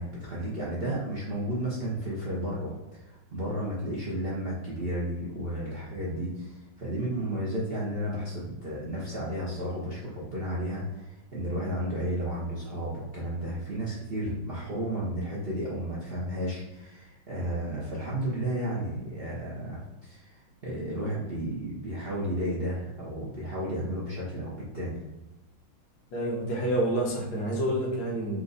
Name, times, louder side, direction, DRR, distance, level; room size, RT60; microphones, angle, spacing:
voice 1, 0.0-25.0, right 1 dB, 75° right, -6 dB, 0.5 m, -33 dB
voice 2, 26.1-28.4, right 1 dB, 65° left, -2 dB, 1.6 m, -28 dB
4.5 x 2.6 x 3.9 m, 1.0 s
omnidirectional pair, 2.4 m